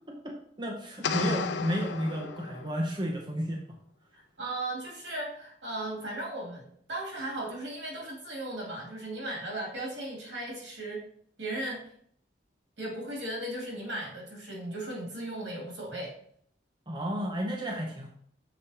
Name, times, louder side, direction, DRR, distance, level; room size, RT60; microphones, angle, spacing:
voice 1, 0.2-3.6 16.9-18.1, equal, 25° right, -1 dB, 0.7 m, -32 dB
sound 1, 1.0-3.0, left 5 dB, 70° left, 0.4 m, -33 dB
voice 2, 4.1-11.0 11.4-11.8 12.8-16.1, right 1 dB, 80° right, -3 dB, 2.6 m, -36 dB
6.8 x 5.0 x 2.9 m, 0.64 s
head